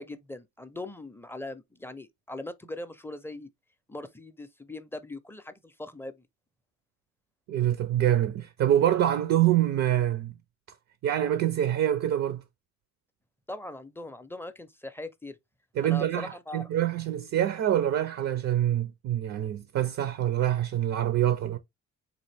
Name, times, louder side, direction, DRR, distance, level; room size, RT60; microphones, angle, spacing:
voice 1, 0.0-3.5 3.9-6.3 13.5-15.4 15.8-16.7, left 2 dB, 10° left, 0.4 m, -40 dB
voice 2, 7.5-10.3 11.0-12.4 15.8-21.6, right 11 dB, 60° right, 0.5 m, -25 dB
4.0 x 2.5 x 3.3 m
cardioid pair, 90°, 30 cm